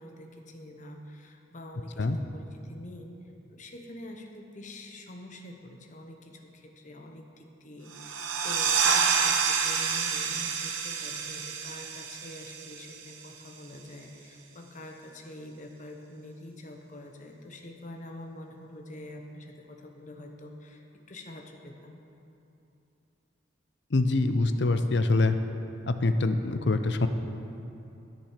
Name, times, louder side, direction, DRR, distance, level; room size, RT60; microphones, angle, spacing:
voice 1, 0.0-3.2 3.5-22.0, left 1 dB, 40° left, 3 dB, 0.9 m, -46 dB
sound 1, 7.9-13.3, right 6 dB, 85° right, 1.0 m, -28 dB
voice 2, 23.9-25.4 25.9-27.1, left 2 dB, 60° left, 9 dB, 0.6 m, -24 dB
10.5 x 10.5 x 5.0 m, 2.8 s
head